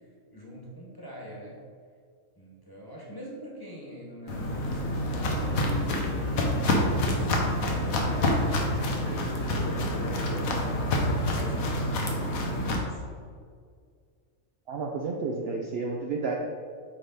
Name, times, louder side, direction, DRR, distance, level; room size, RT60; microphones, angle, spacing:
voice 1, 0.3-1.6 2.3-5.6 6.1-13.2, equal, 15° left, -4 dB, 1.3 m, -43 dB
Walk footsteps, 4.3-12.8, left 1 dB, 90° left, 1.3 m, -27 dB
voice 2, 14.7-16.3, right 4 dB, 60° right, 0 dB, 0.7 m, -31 dB
8.8 x 3.4 x 4.0 m, 2.1 s
omnidirectional pair, 1.4 m